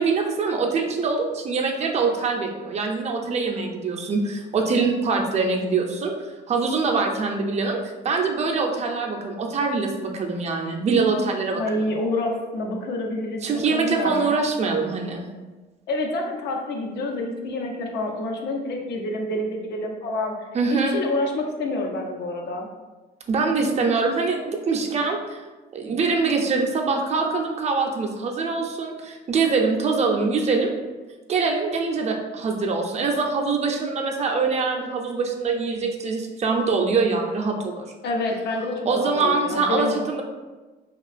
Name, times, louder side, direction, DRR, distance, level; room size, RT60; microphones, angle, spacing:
voice 1, 0.0-6.1 6.5-11.8 13.4-15.2 20.5-20.9 23.3-25.4 25.7-30.7 31.3-37.9 38.9-40.2, right 4 dB, 40° right, 1 dB, 0.4 m, -24 dB
voice 2, 11.5-13.4 13.7-14.3 15.9-20.3 20.7-22.7 38.0-39.9, left 2 dB, 75° left, 2 dB, 0.5 m, -27 dB
2.9 x 2.4 x 2.4 m, 1.2 s
cardioid pair, 95°, 18 cm